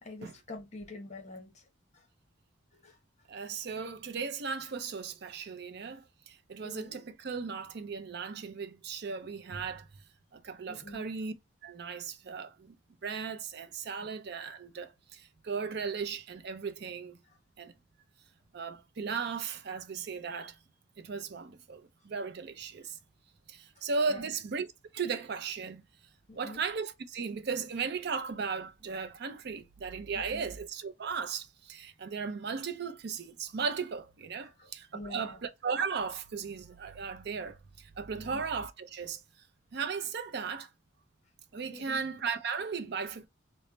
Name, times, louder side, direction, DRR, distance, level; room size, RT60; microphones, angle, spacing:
voice 1, 0.0-1.7 1.9-2.1 2.7-3.0 6.6-7.0 10.7-11.1 14.0-14.1 23.8-23.9 24.1-24.3 26.3-26.6 30.1-30.5 34.4-35.4 38.2-38.4 41.7-42.0, left 2 dB, 35° left, 0.9 m, -47 dB
voice 2, 3.3-9.9 10.3-11.3 11.6-12.8 13.0-17.2 17.6-17.7 18.5-20.6 21.0-23.0 23.5-24.7 24.9-25.8 26.3-39.2 39.7-40.7 41.5-43.3, right 5 dB, 55° right, 0.5 m, -36 dB
3.1 x 2.1 x 3.8 m
head